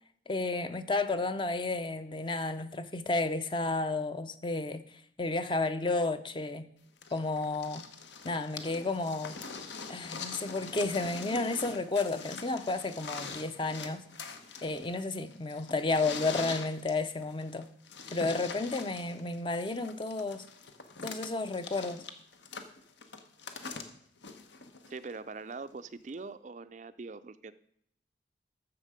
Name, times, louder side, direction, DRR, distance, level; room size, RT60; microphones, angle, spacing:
voice 1, 0.3-4.8 5.2-6.7 7.1-7.8 8.2-9.4 9.9-14.0 14.6-17.7 18.1-20.4 21.0-22.0, left 3 dB, 25° left, 0.6 m, -32 dB
sound 1, 7.0-25.1 26.1-26.2, left 5 dB, 75° left, 1.2 m, -43 dB
voice 2, 24.9-27.5, right 4 dB, 40° right, 0.4 m, -42 dB
12.5 x 7.4 x 5.0 m
head